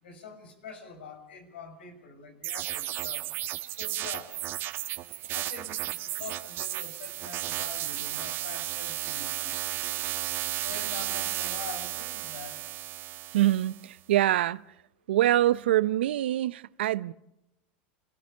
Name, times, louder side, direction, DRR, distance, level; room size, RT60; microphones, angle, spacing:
voice 1, 0.0-3.3 3.7-4.4 5.3-9.6 10.5-12.6, left 5 dB, 90° left, 6.1 m, -45 dB
sound 1, 2.4-13.8, right 14 dB, 40° right, 1.4 m, -34 dB
voice 2, 13.3-14.6 15.1-17.1, right 14 dB, 85° right, 0.7 m, -24 dB
30.0 x 14.5 x 7.3 m
supercardioid pair, 120°, 6 cm